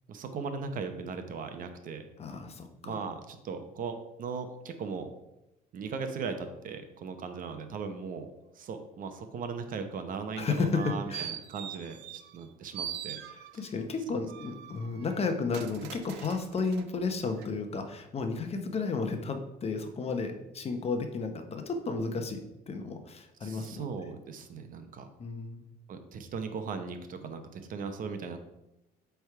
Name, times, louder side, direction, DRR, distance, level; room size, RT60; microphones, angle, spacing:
voice 1, 0.1-2.0 2.8-5.1 5.7-13.2 23.4-25.1 25.9-28.4, right 5 dB, 55° right, 7 dB, 0.8 m, -38 dB
voice 2, 2.2-3.0 10.4-11.3 13.3-22.4 22.7-23.8 25.2-25.7, left 4 dB, 35° left, 6 dB, 0.9 m, -33 dB
sound 1, 10.6-12.5 12.7-13.8 14.3-16.9 17.4-17.5, right 10 dB, 85° right, 0.5 m, -42 dB
8.0 x 3.5 x 4.7 m, 0.91 s
cardioid pair, 110°, 17 cm